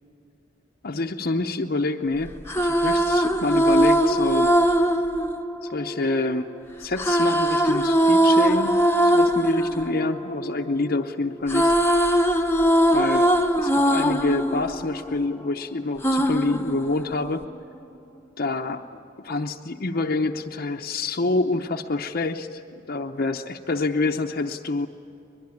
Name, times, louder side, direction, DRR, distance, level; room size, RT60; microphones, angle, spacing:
voice 1, 0.8-4.5 5.6-6.5 6.8-8.8 9.0-11.7 12.9-13.3 13.6-17.4 18.4-22.6 22.9-24.9, left 3 dB, 50° left, 2 dB, 0.7 m, -27 dB
sound 1, 2.3-6.4 7.0-11.0 11.3-15.5 16.0-17.5, right 1 dB, 10° left, 0.9 m, -21 dB
22.5 x 22.0 x 9.7 m, 2.8 s
head